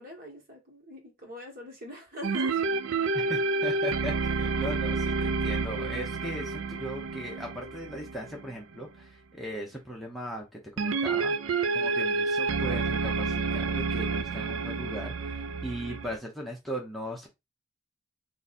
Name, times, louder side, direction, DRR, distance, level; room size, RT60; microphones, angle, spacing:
voice 1, 0.0-2.6, equal, 45° right, 1.7 m, -42 dB
sound 1, 2.2-8.8 10.8-16.2, right 4 dB, 75° right, 0.5 m, -29 dB
voice 2, 3.1-17.3, equal, ahead, 0.9 m, -38 dB
3.8 x 2.7 x 4.2 m
head